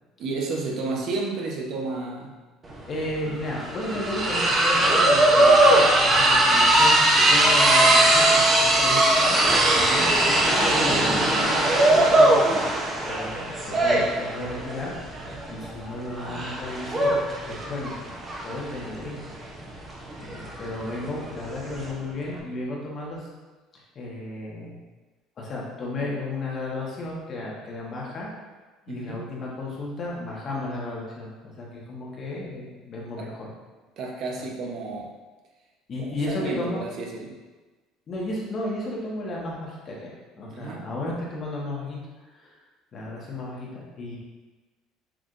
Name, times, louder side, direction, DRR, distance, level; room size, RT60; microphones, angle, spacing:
voice 1, 0.2-2.4 9.7-10.2 28.9-29.2 33.2-33.3 34.0-35.1 36.0-37.4 40.5-40.8, right 3 dB, 50° right, 0 dB, 0.9 m, -32 dB
sound 1, 2.7-2.8 3.0-21.9, right 1 dB, 25° right, 0.8 m, -20 dB
voice 2, 2.9-9.7 10.2-12.6 13.0-14.9 15.5-17.9 18.4-19.2 20.2-23.3 23.9-24.8 25.4-28.3 28.9-33.5 35.9-36.8 38.1-40.1 40.4-42.6 42.9-44.2, left 2 dB, 35° left, -4 dB, 1.2 m, -33 dB
6.0 x 3.4 x 2.6 m, 1.3 s
cardioid pair, 135°, 0 cm